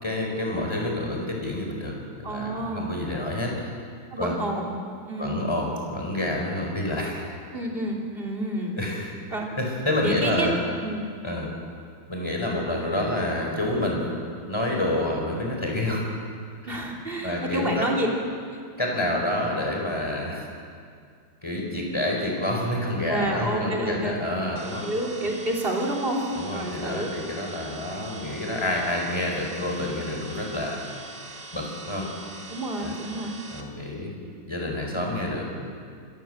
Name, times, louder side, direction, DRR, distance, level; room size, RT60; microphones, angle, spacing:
voice 1, 0.0-3.8 4.2-4.3 5.2-7.3 8.8-9.1 9.6-10.6 11.2-11.5 12.1-14.0 14.5-16.0 17.2-17.9 18.8-20.5 21.4-24.9 26.4-30.8 31.5-32.1 32.8-32.9 33.5-34.2 34.5-35.6, left 1 dB, 15° left, 0 dB, 4.4 m, -28 dB
voice 2, 2.2-3.0 4.1-4.8 5.0-5.4 7.5-8.8 9.3-9.5 10.0-10.5 10.8-11.1 16.7-18.1 23.1-24.2 24.8-27.1 32.5-33.4, right 1 dB, 30° right, -1 dB, 3.1 m, -29 dB
sound 1, 24.6-33.6, right 2 dB, 70° right, 2.9 m, -42 dB
26.0 x 15.0 x 7.7 m, 2.2 s
omnidirectional pair, 2.1 m